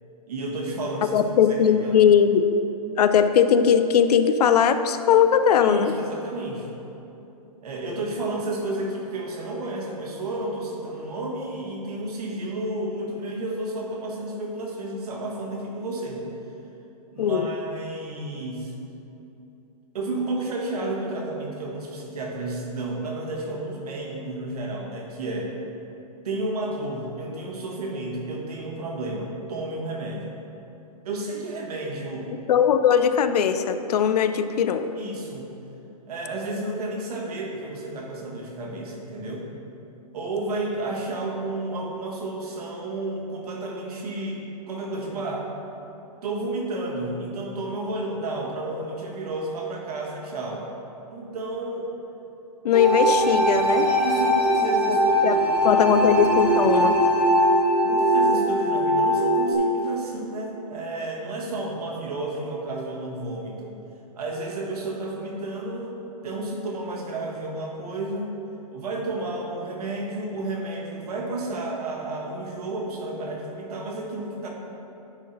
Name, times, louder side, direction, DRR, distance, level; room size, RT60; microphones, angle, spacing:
voice 1, 0.3-1.2 1.8-2.0 5.6-6.7 7.6-16.2 17.1-18.7 19.9-25.5 26.2-30.3 31.0-32.3 35.0-35.5 36.1-39.4 40.1-44.4 44.7-45.5 46.2-50.6 51.1-51.9 53.8-55.8 57.8-63.7 64.1-65.9 66.2-68.3 68.7-74.5, right 2 dB, 70° right, -1 dB, 1.6 m, -31 dB
voice 2, 1.1-2.5 3.0-5.9 17.2-17.5 32.5-35.0 52.6-53.9 54.9-55.0 55.2-55.4 55.6-57.0, left 8 dB, 75° left, 10 dB, 0.5 m, -19 dB
sound 1, 52.7-59.5, right 1 dB, 5° right, 0.6 m, -21 dB
9.8 x 3.8 x 4.2 m, 2.9 s
hypercardioid pair, 150°, 20 cm